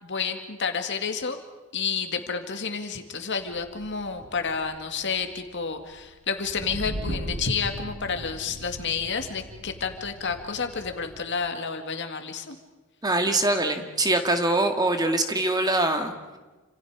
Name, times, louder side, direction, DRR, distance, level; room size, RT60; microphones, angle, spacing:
voice 1, 0.0-1.4 1.7-12.6, left 5 dB, 55° left, 6 dB, 2.1 m, -30 dB
sound 1, 3.4-11.2, equal, 85° right, 6.3 m, -39 dB
voice 2, 13.0-16.2, right 2 dB, 20° right, 6 dB, 1.8 m, -23 dB
29.5 x 27.0 x 5.0 m, 1.2 s
head